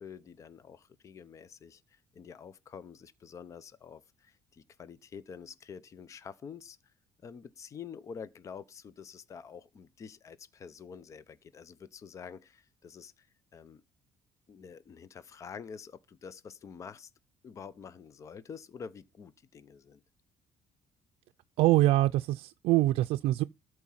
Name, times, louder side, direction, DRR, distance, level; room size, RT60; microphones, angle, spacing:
voice 1, 0.0-6.8 7.2-13.3 13.5-13.8 14.5-17.1 17.4-20.0, left 6 dB, 30° left, 0.7 m, -47 dB
voice 2, 21.6-23.4, right 16 dB, 85° right, 0.4 m, -24 dB
13.5 x 4.7 x 5.7 m
cardioid pair, 150°, 10 cm